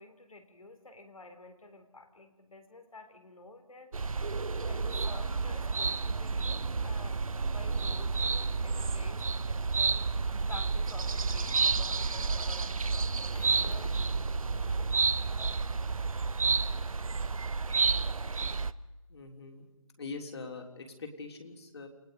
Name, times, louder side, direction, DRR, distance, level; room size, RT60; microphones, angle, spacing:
voice 1, 0.0-3.9 4.6-7.2 7.5-10.0 10.5-15.1, left 2 dB, 80° left, 6 dB, 3.7 m, -50 dB
sound 1, 3.9-18.7, right 4 dB, 80° right, 0.8 m, -30 dB
voice 2, 19.1-19.6 20.0-21.9, left 4 dB, 50° left, 3 dB, 3.4 m, -43 dB
28.5 x 19.0 x 5.2 m, 1.1 s
figure-of-eight pair, 155°, 18 cm